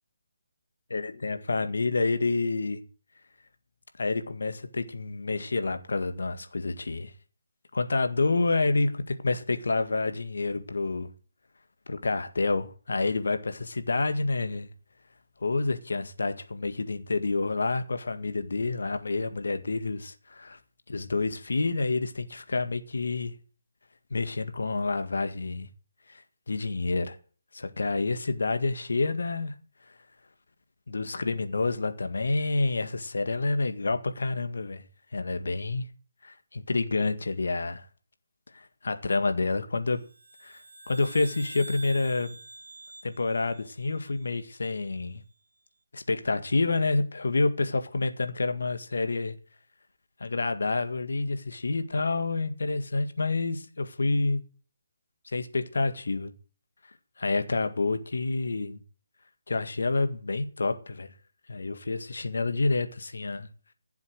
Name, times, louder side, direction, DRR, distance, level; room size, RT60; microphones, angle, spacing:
voice 1, 0.9-2.8 4.0-7.1 7.7-11.1 11.9-14.7 15.4-20.6 20.9-23.3 24.1-25.7 26.1-27.2 27.5-29.5 30.9-34.8 35.1-35.9 36.2-37.9 38.5-40.0 40.4-42.4 43.0-45.2 45.9-49.4 50.2-54.4 55.3-56.3 57.2-58.8 59.5-61.1 61.5-63.5, left 3 dB, 75° left, 1.8 m, -28 dB
sound 1, 40.0-44.6, right 3 dB, 75° right, 2.3 m, -47 dB
16.0 x 7.2 x 6.5 m
figure-of-eight pair, 150°, 0 cm